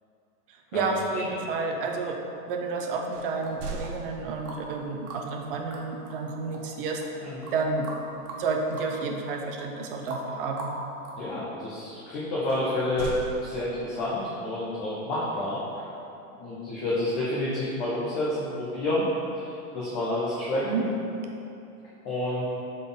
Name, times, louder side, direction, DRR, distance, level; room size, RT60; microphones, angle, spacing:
voice 1, 0.5-2.2 2.5-7.0 7.5-7.9 8.3-10.7 20.6-20.9, right 4 dB, 35° right, 2 dB, 0.6 m, -30 dB
sound 1, 3.1-4.8 7.5-7.8 8.2-8.5 12.5-14.1, right 3 dB, 80° right, 0.9 m, -39 dB
sound 2, 3.4-4.7 5.1-11.4, right 2 dB, 60° right, 1.4 m, -41 dB
voice 2, 11.2-13.1 13.4-15.9 16.4-19.0 19.4-20.9 22.0-22.4, left 1 dB, 15° left, -8 dB, 0.6 m, -29 dB
7.5 x 4.0 x 3.8 m, 2.8 s
hypercardioid pair, 155°, 46 cm